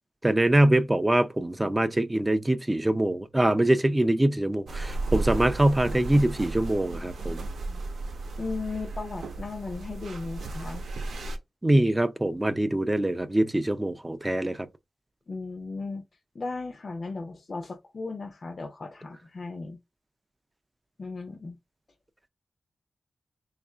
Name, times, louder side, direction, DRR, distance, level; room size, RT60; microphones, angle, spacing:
voice 1, 0.2-7.4 11.6-14.7, right 1 dB, 15° right, 0.4 m, -24 dB
sound 1, 4.7-11.4, right 2 dB, 85° right, 0.7 m, -34 dB
voice 2, 8.4-10.8 15.3-16.0 16.3-19.8 21.0-21.6, left 3 dB, 45° left, 0.5 m, -36 dB
3.4 x 2.4 x 4.3 m
wide cardioid pair, 135°, 0 cm